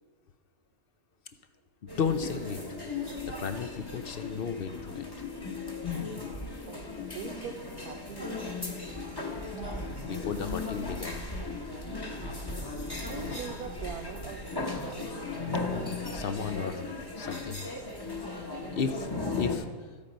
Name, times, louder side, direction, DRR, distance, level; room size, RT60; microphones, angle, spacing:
sound 1, 1.9-19.6, left 3 dB, 15° left, 1.1 m, -36 dB
voice 1, 2.0-2.7 3.3-5.0 10.0-11.2 11.9-12.0 15.5-15.6 16.1-16.8 17.2-17.6 18.7-19.1 19.3-19.7, left 6 dB, 55° left, 9 dB, 0.7 m, -33 dB
voice 2, 6.6-8.4 13.0-15.1, right 8 dB, 80° right, 5 dB, 1.2 m, -43 dB
13.5 x 8.6 x 5.2 m, 1.5 s
omnidirectional pair, 1.5 m